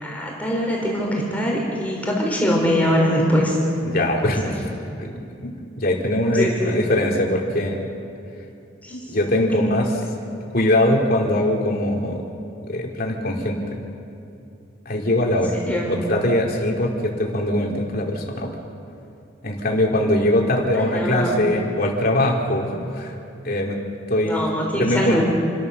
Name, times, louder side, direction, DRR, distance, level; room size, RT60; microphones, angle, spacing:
voice 1, 0.0-3.6 4.2-4.5 6.3-6.8 8.8-9.0 15.3-15.4 15.7-16.0 20.7-21.4 24.2-25.2, equal, 10° left, -2 dB, 3.5 m, -23 dB
voice 2, 3.8-4.4 4.9-7.8 9.1-9.9 10.5-12.2 12.7-13.6 14.8-15.5 15.9-18.5 19.4-23.1 23.4-23.8 24.1-24.5 24.8-25.2, left 1 dB, 50° left, 0 dB, 2.9 m, -21 dB
29.0 x 13.5 x 6.6 m, 2.6 s
head